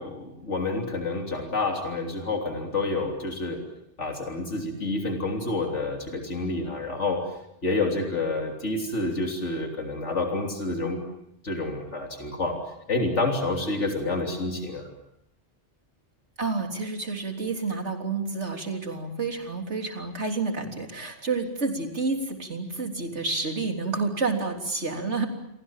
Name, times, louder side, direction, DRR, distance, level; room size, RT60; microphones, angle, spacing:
voice 1, 0.0-3.6 4.0-7.2 7.6-11.0 11.4-12.6 12.9-14.9, left 2 dB, 90° left, 2 dB, 3.7 m, -28 dB
voice 2, 16.4-25.3, right 3 dB, 75° right, 3 dB, 3.8 m, -29 dB
30.0 x 24.0 x 7.4 m, 0.80 s
omnidirectional pair, 1.2 m